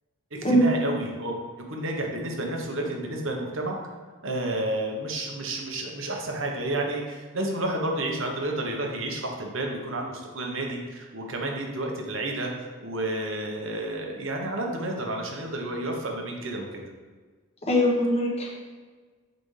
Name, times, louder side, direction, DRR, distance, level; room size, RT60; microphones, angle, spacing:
voice 1, 0.3-1.3 1.7-3.8 4.2-16.8, right 1 dB, 60° right, 1 dB, 1.0 m, -31 dB
voice 2, 17.6-18.5, equal, 30° left, -3 dB, 1.2 m, -21 dB
7.7 x 5.1 x 3.3 m, 1.4 s
head